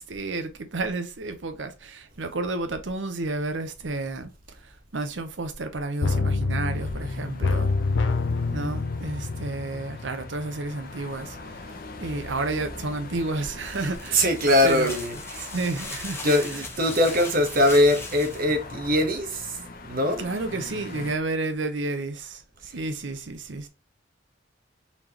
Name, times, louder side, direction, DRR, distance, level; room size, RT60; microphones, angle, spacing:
voice 1, 0.0-7.7 8.5-11.7 12.0-14.3 14.6-15.0 15.4-16.2 20.2-23.7, right 2 dB, 75° right, 0.8 m, -31 dB
sound 1, 6.0-10.7 11.0-11.1, left 3 dB, 80° left, 0.5 m, -27 dB
sound 2, 6.7-21.1, left 3 dB, 50° left, 0.8 m, -42 dB
sound 3, 13.7-18.5, left 2 dB, 15° left, 0.9 m, -38 dB
voice 2, 14.1-15.5 16.2-19.6 19.8-20.3, left 1 dB, 50° right, 1.0 m, -22 dB
4.1 x 3.4 x 2.8 m
head